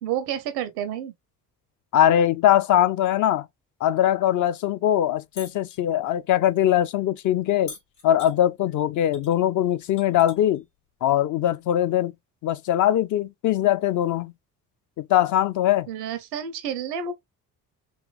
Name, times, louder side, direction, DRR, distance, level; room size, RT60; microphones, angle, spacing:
voice 1, 0.0-1.1 15.9-17.1, right 8 dB, 85° right, 0.7 m, -30 dB
voice 2, 1.9-3.5 3.8-7.7 8.0-10.6 11.0-12.1 12.4-14.3 15.0-15.9, left 11 dB, 40° left, 0.4 m, -21 dB
sound 1, 5.4-5.8 7.7-8.4 9.1-9.3 9.7-10.6 11.8-11.9, left 3 dB, 85° left, 1.5 m, -42 dB
3.2 x 3.0 x 2.3 m
hypercardioid pair, 50°, 48 cm